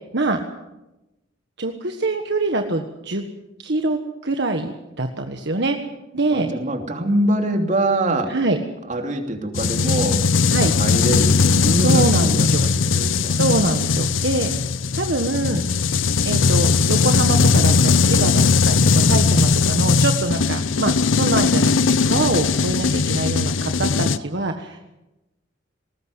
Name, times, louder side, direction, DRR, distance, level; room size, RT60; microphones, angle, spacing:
voice 1, 1.6-3.2 3.6-4.7 5.0-5.8 6.1-6.5 8.3-8.6 10.5-10.7 11.8-12.6 13.3-14.5 14.9-15.7 16.2-21.7 22.0-24.8, right 2 dB, 60° right, 5 dB, 1.5 m, -24 dB
voice 2, 6.3-8.3 8.9-10.2 10.7-13.4, right 1 dB, 40° right, 4 dB, 3.0 m, -24 dB
sound 1, 9.5-24.2, left 4 dB, 80° left, 0.7 m, -19 dB
20.0 x 19.0 x 8.0 m, 0.96 s
head